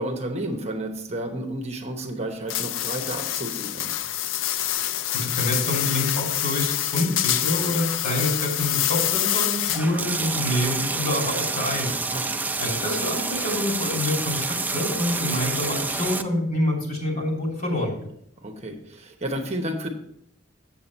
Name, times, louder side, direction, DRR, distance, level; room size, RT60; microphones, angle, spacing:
voice 1, 0.0-3.9 12.1-12.4 18.4-19.9, right 1 dB, 35° right, 4 dB, 1.0 m, -31 dB
sound 1, 2.5-10.0, left 12 dB, 70° left, 0.4 m, -26 dB
voice 2, 5.1-11.9 12.6-18.0, left 1 dB, 50° left, -1 dB, 2.9 m, -27 dB
sound 2, 9.7-16.2, right 3 dB, 10° right, 0.4 m, -28 dB
7.6 x 7.5 x 4.2 m, 0.71 s
head